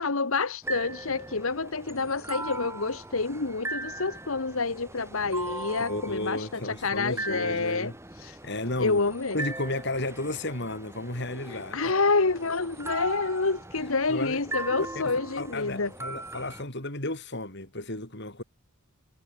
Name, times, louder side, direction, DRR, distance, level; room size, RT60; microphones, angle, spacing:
voice 1, 0.0-7.9 8.2-8.4 8.8-9.4 11.5-15.9, left 3 dB, 70° left, 1.4 m, -28 dB
sound 1, 0.6-16.6, right 2 dB, 10° right, 4.2 m, -39 dB
voice 2, 5.8-7.9 8.2-9.0 9.3-11.9 14.1-14.4 15.4-18.4, left 1 dB, 50° left, 6.4 m, -33 dB
head